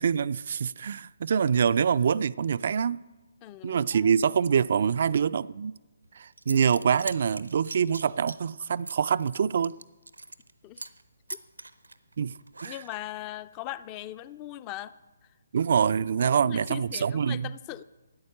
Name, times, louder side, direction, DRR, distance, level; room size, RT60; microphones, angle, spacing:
voice 1, 0.0-3.0 3.6-5.7 6.2-9.7 12.2-12.3 12.6-12.8 15.5-17.5, right 7 dB, 50° right, 0.3 m, -25 dB
voice 2, 3.4-4.1 10.6-10.8 12.6-14.9 16.3-17.8, left 14 dB, 25° left, 0.4 m, -39 dB
Zipper (clothing) / Coin (dropping), 6.0-6.1 6.4-10.5 10.8-11.0 11.3-13.1, right 2 dB, 80° right, 0.7 m, -42 dB
13.5 x 9.4 x 6.5 m
figure-of-eight pair, 140°, 0 cm